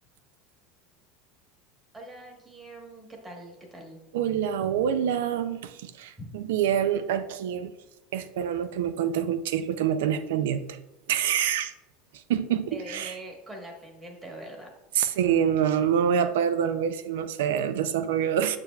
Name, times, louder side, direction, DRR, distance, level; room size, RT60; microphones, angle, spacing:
voice 1, 1.9-4.0 6.2-6.3 12.7-14.7, right 1 dB, 15° right, 1 dB, 1.2 m, -43 dB
voice 2, 4.1-7.7 8.1-10.8 11.1-11.7 12.1-13.2 14.9-18.6, right 8 dB, 85° right, 12 dB, 0.4 m, -26 dB
6.9 x 6.7 x 2.3 m, 1.0 s
supercardioid pair, 140°, 0 cm